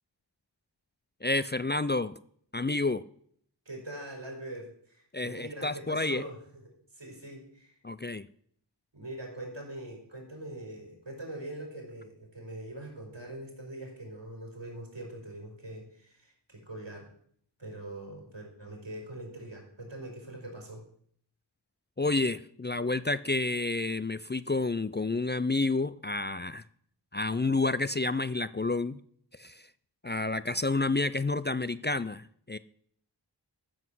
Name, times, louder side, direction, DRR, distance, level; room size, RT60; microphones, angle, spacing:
voice 1, 1.2-2.2 2.5-3.0 5.1-6.2 7.8-8.3 22.0-26.6 27.1-29.0 29.3-29.7 30.0-32.6, left 2 dB, 25° left, 15 dB, 0.4 m, -29 dB
voice 2, 3.6-6.4 6.9-7.8 8.9-17.1 17.6-20.8, right 1 dB, 75° right, 0 dB, 4.6 m, -43 dB
14.0 x 7.4 x 6.2 m, 0.63 s
wide cardioid pair, 45°, 44 cm